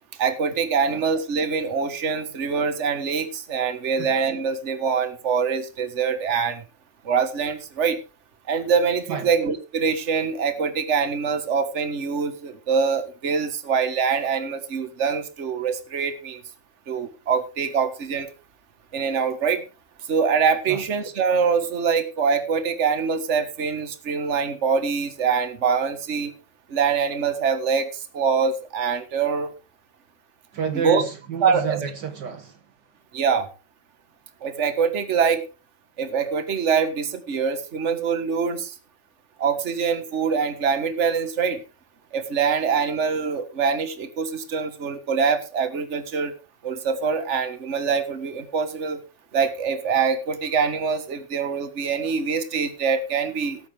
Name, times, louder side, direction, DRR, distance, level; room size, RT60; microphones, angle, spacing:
voice 1, 0.2-6.6 7.1-8.0 8.5-16.4 16.9-18.3 18.9-19.6 20.1-26.3 26.7-27.9 28.1-29.5 30.7-31.0 31.4-31.8 33.1-33.5 34.4-35.5 36.0-38.7 39.4-41.6 42.1-46.3 46.6-49.0 49.3-53.6, right 6 dB, 40° right, 1.7 m, -24 dB
voice 2, 30.5-32.6, right 7 dB, 65° right, 1.7 m, -30 dB
19.0 x 8.6 x 3.5 m
omnidirectional pair, 2.1 m